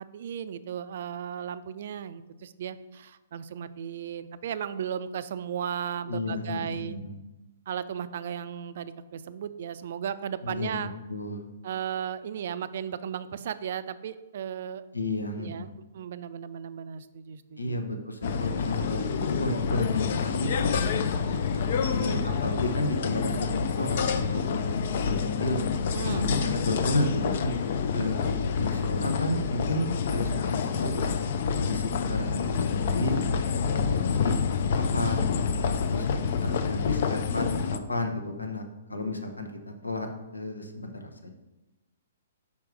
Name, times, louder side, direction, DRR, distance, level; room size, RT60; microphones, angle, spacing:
voice 1, 0.0-7.0 7.7-10.9 11.6-14.8 15.4-15.7 15.9-17.8 21.9-22.3 25.9-26.4 36.2-36.8 37.1-37.8, right 8 dB, 50° right, 14 dB, 0.4 m, -36 dB
voice 2, 6.1-7.2 10.4-11.5 14.9-15.7 17.6-21.4 22.0-25.7 26.2-27.5 27.9-31.1 31.6-34.4 34.8-36.1 36.4-41.3, left 2 dB, 80° left, 4 dB, 0.9 m, -32 dB
sound 1, 18.2-37.8, left 6 dB, 50° left, 0.5 m, -28 dB
5.6 x 4.6 x 4.6 m, 1.0 s
figure-of-eight pair, 120°, 0 cm